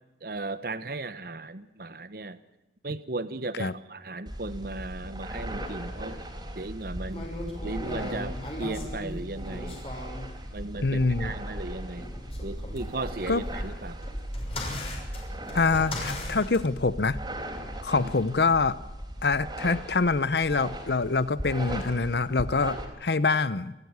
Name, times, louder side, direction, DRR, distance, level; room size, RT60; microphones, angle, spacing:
voice 1, 0.2-2.4 2.8-6.2 6.5-7.3 7.6-9.8 10.5-12.1 12.4-14.0 17.9-18.1, right 2 dB, 55° right, 14 dB, 1.0 m, -36 dB
sound 1, 4.3-22.9, right 1 dB, 25° right, 4.2 m, -38 dB
sound 2, 7.1-10.3 11.9-16.6, left 1 dB, 35° left, 6.1 m, -38 dB
voice 2, 10.8-11.3 13.3-13.4 15.5-17.2 17.8-18.8 19.2-23.7, left 4 dB, 70° left, 16 dB, 0.8 m, -25 dB
29.0 x 13.5 x 9.6 m, 0.99 s
head